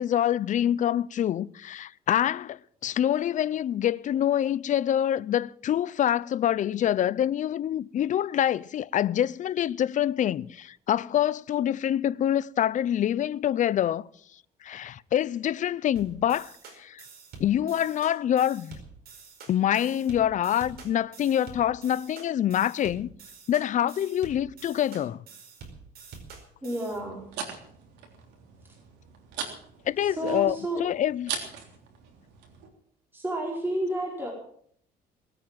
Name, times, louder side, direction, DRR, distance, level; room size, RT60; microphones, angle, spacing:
voice 1, 0.0-14.0 14.6-16.5 16.8-17.0 17.4-18.8 19.5-23.1 23.5-25.2 29.9-31.3, left 10 dB, 50° left, 0.6 m, -26 dB
sound 1, 16.0-27.0, right 5 dB, 65° right, 4.9 m, -47 dB
voice 2, 26.6-27.2 30.0-30.9 33.1-34.3, right 1 dB, 10° right, 4.9 m, -31 dB
sound 2, 26.9-32.7, right 6 dB, 90° right, 3.5 m, -40 dB
19.5 x 9.0 x 7.6 m
cardioid pair, 110°, 17 cm